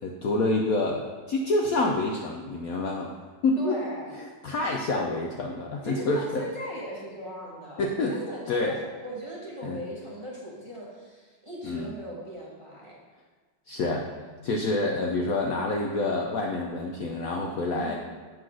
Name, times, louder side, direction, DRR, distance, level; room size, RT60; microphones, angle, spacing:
voice 1, 0.0-3.1 3.4-3.8 4.2-6.4 7.8-8.1 8.5-8.8 9.6-9.8 11.6-11.9 13.7-14.1 14.4-17.9, left 2 dB, 65° left, 0 dB, 0.9 m, -27 dB
voice 2, 3.6-4.1 5.8-12.9 17.7-17.9, equal, 20° right, -5 dB, 1.1 m, -38 dB
7.4 x 4.0 x 6.2 m, 1.4 s
omnidirectional pair, 2.0 m